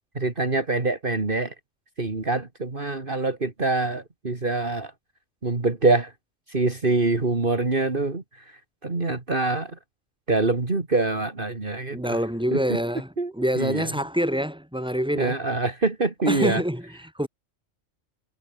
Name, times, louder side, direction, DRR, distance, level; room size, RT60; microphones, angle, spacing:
voice 1, 0.1-1.5 2.0-4.9 5.4-6.1 6.5-8.2 8.8-9.8 10.3-12.2 12.5-12.6 13.2-13.9 15.1-16.6, right 3 dB, 45° right, 2.7 m, -25 dB
voice 2, 11.9-15.4 16.3-17.3, equal, 5° right, 6.3 m, -26 dB
omnidirectional pair, 1.3 m